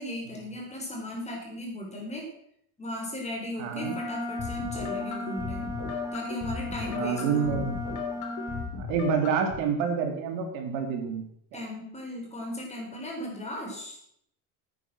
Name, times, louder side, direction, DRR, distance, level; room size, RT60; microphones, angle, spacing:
voice 1, 0.0-2.3 2.8-5.7 6.1-7.7 11.5-14.0, left 1 dB, 15° left, -1 dB, 4.5 m, -37 dB
voice 2, 3.6-4.0 6.9-7.8 8.8-11.3 11.5-11.6, right 6 dB, 75° right, 4 dB, 2.7 m, -28 dB
Wind instrument woodwind instrument, 3.7-8.7, left 1 dB, 5° right, 1.9 m, -36 dB
sound 1, 4.4-9.6, left 6 dB, 40° left, 3.0 m, -36 dB
10.0 x 9.2 x 6.1 m, 0.70 s
cardioid pair, 130°, 44 cm